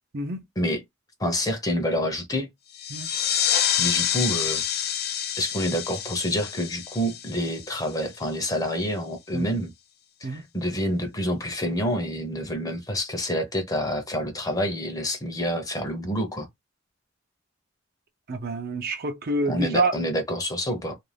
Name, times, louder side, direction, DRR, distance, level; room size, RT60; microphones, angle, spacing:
voice 1, 1.2-2.5 3.8-4.6 5.4-9.7 10.2-16.5 19.5-21.0, equal, 20° left, 0.7 m, -27 dB
sound 1, 2.7-8.1, left 9 dB, 55° left, 0.4 m, -27 dB
voice 2, 18.3-19.9, right 2 dB, 50° right, 0.5 m, -27 dB
2.5 x 2.3 x 3.3 m
head